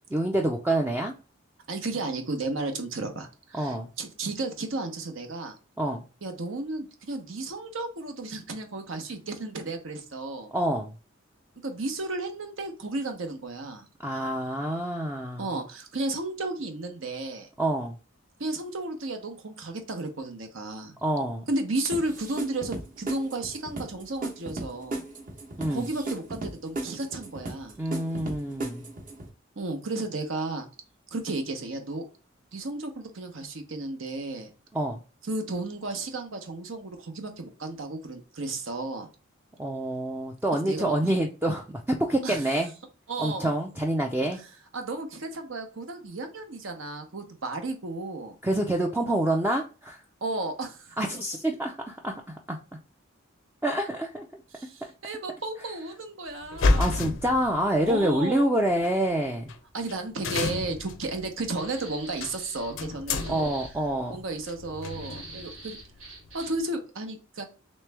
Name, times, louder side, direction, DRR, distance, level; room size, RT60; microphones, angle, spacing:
voice 1, 0.1-1.1 3.5-3.9 5.8-6.0 10.5-11.0 14.0-15.5 17.6-18.0 21.0-21.4 25.6-25.9 27.8-28.8 34.7-35.0 39.6-42.7 43.2-44.4 48.4-50.0 51.0-52.6 53.6-54.3 56.8-59.5 63.3-64.2, right 1 dB, 10° right, 1 dB, 0.4 m, -27 dB
voice 2, 1.7-5.6 6.2-10.5 11.6-13.9 15.4-17.5 18.4-20.9 21.5-25.0 25.7-27.8 29.6-30.7 31.1-32.1 32.5-34.5 35.3-39.1 40.6-40.9 42.2-42.4 43.1-43.5 44.7-48.3 50.2-51.0 54.5-57.2 57.8-58.5 59.7-63.5 64.1-65.8 66.3-67.5, right 2 dB, 70° right, 6 dB, 0.9 m, -33 dB
sound 1, 21.9-29.3, right 2 dB, 40° right, 1.0 m, -36 dB
sound 2, 56.4-58.0 58.8-58.9 59.5-59.6 59.8-59.9 60.2-66.6, left 3 dB, 75° left, 0.5 m, -31 dB
sound 3, 61.6-62.8 63.1-63.7 64.8-66.7, right 3 dB, 90° right, 1.5 m, -45 dB
3.3 x 3.1 x 3.3 m, 0.34 s
head